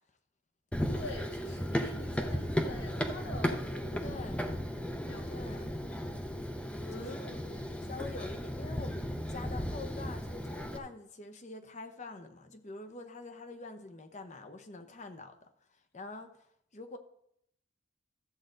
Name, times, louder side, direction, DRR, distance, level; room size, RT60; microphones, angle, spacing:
Run, 0.7-10.8, equal, 5° left, 0.7 m, -35 dB
voice 1, 0.9-4.2 5.1-5.5 5.9-6.0 6.8-7.8, left 1 dB, 65° left, 0 dB, 2.4 m, -45 dB
voice 2, 4.0-4.4 5.3-5.7 6.9-7.2 7.9-15.5 15.9-16.3 16.7-17.0, left 3 dB, 40° left, 7 dB, 0.9 m, -45 dB
13.0 x 7.7 x 3.9 m, 0.73 s
head